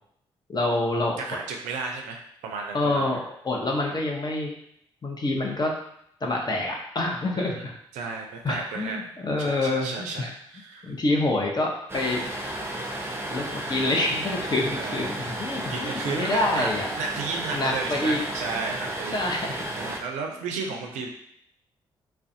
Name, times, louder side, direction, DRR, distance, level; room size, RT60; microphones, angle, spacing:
voice 1, 0.5-1.2 2.7-4.5 5.0-5.7 6.2-7.7 8.4-10.3 10.8-12.2 13.3-16.9 17.5-18.2 19.1-19.6, left 2 dB, 35° left, 0 dB, 0.7 m, -27 dB
voice 2, 1.2-3.1 7.3-7.6 7.9-9.0 9.4-10.9 14.8-15.1 15.7-16.7 17.0-19.5 19.8-21.1, right 4 dB, 75° right, 2 dB, 0.4 m, -33 dB
sound 1, 11.9-20.0, right 1 dB, 20° right, 0.6 m, -33 dB
2.4 x 2.2 x 2.6 m, 0.72 s
hypercardioid pair, 40°, 13 cm